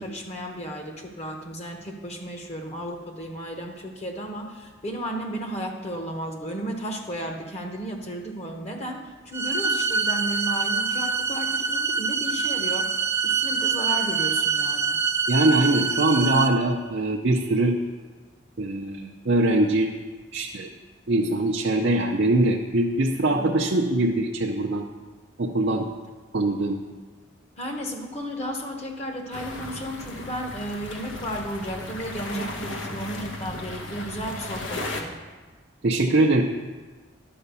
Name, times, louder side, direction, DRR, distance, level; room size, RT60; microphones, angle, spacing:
voice 1, 0.0-15.0 23.3-23.5 27.6-35.1, equal, 35° left, 2 dB, 1.1 m, -34 dB
sound 1, 9.3-16.5, right 5 dB, 15° right, 0.4 m, -25 dB
voice 2, 15.3-17.8 18.6-19.9 20.3-20.7 21.1-24.9 25.4-25.9 26.3-26.8 35.8-36.4, right 2 dB, 60° right, -2 dB, 0.6 m, -22 dB
sound 2, 29.3-35.0, left 2 dB, 85° left, 1.1 m, -35 dB
11.0 x 5.0 x 6.9 m, 1.3 s
head